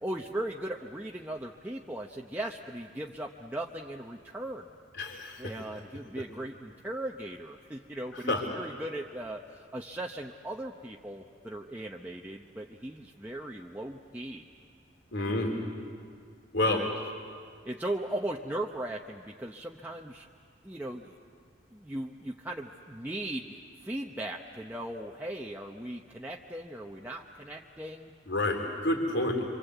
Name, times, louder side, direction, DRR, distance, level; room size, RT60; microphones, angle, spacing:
voice 1, 0.0-4.7 5.4-14.4 16.6-16.9 17.6-20.3 20.6-21.1 21.7-28.1, right 1 dB, 10° right, -1 dB, 0.9 m, -38 dB
voice 2, 4.9-5.6 8.1-8.4 15.1-15.6 16.5-16.8 28.3-29.5, left 2 dB, 75° left, 1 dB, 3.7 m, -29 dB
28.0 x 25.5 x 8.2 m, 2.2 s
head